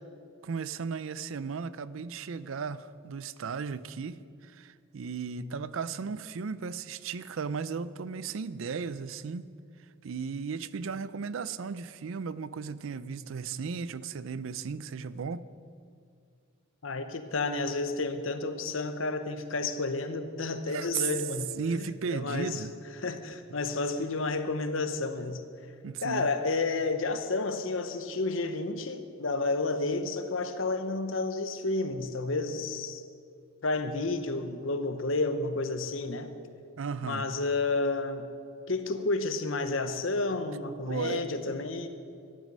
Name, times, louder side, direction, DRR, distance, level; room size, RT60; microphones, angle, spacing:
voice 1, 0.4-9.5 10.0-15.5 20.7-21.1 21.6-22.7 25.8-26.3 36.8-37.3 40.9-41.3, right 5 dB, 70° right, 16 dB, 0.4 m, -35 dB
voice 2, 16.8-21.5 21.8-22.6 23.0-25.4 26.0-33.0 33.6-36.3 37.0-38.3 38.7-41.9, left 3 dB, 70° left, 9 dB, 0.9 m, -31 dB
14.0 x 11.0 x 5.4 m, 2.3 s
head